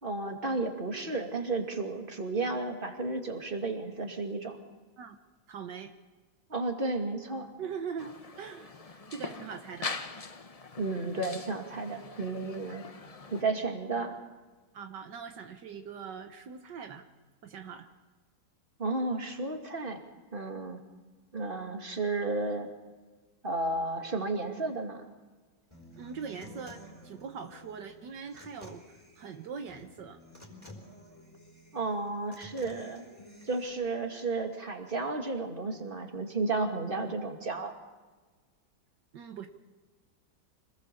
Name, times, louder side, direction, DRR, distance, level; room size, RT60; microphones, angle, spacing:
voice 1, 0.0-4.6 6.5-7.5 10.8-12.8 13.3-14.2 18.8-20.0 20.3-20.8 21.3-22.7 23.4-25.0 31.7-33.0 33.4-37.7, right 3 dB, 30° right, 3 dB, 2.6 m, -33 dB
voice 2, 5.5-5.9 7.6-9.9 12.7-12.8 14.7-17.0 17.4-17.9 26.0-30.2 39.1-39.5, right 6 dB, 75° right, 6 dB, 1.8 m, -42 dB
sound 1, 8.0-13.4, left 4 dB, 30° left, 0.7 m, -42 dB
Human voice / Acoustic guitar, 25.7-33.7, left 1 dB, 10° left, 4.5 m, -52 dB
26.0 x 19.5 x 6.9 m, 1.3 s
omnidirectional pair, 1.9 m